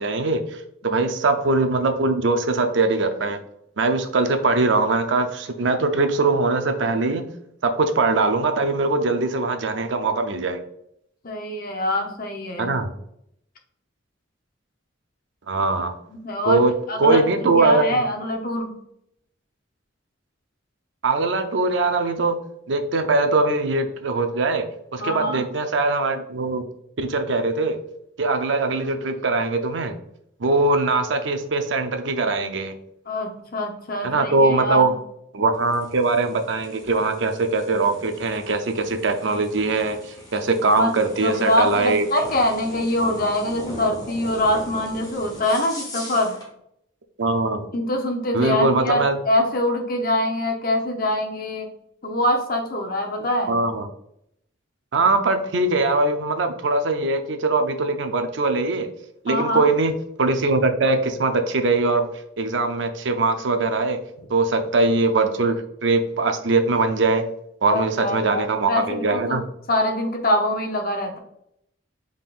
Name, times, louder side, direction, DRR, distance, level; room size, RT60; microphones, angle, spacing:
voice 1, 0.0-3.4 3.8-7.3 7.6-10.6 12.6-12.9 15.5-15.9 16.4-16.7 17.0-18.0 21.0-22.4 22.7-24.7 24.9-26.6 27.0-27.8 28.2-30.0 30.4-32.7 34.0-34.9 35.3-42.1 47.2-47.7 48.3-49.2 53.5-53.9 54.9-58.9 59.2-59.9 60.2-62.1 62.4-64.0 64.3-67.3 67.6-69.4, right 3 dB, 70° right, 7 dB, 0.6 m, -21 dB
voice 2, 11.2-12.7 16.1-16.6 16.9-18.7 25.0-25.5 33.1-35.0 40.7-40.9 41.2-46.4 47.7-51.7 52.0-53.5 59.3-59.7 67.7-69.4 69.7-71.2, left 1 dB, 50° left, 3 dB, 0.8 m, -24 dB
sound 1, 35.5-46.5, left 2 dB, 20° left, 1.2 m, -40 dB
5.4 x 3.7 x 2.5 m, 0.75 s
head